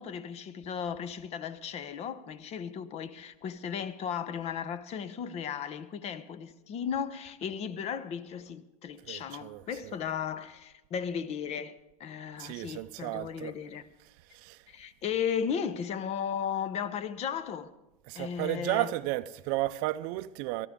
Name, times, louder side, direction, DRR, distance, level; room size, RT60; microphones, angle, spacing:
voice 1, 0.0-13.9 14.7-17.7 18.1-18.9, left 7 dB, 35° left, 0.9 m, -35 dB
voice 2, 9.1-9.9 12.4-13.5 14.3-14.6 18.1-20.7, right 17 dB, 50° right, 0.5 m, -33 dB
18.0 x 13.5 x 3.7 m
supercardioid pair, 120°, 19 cm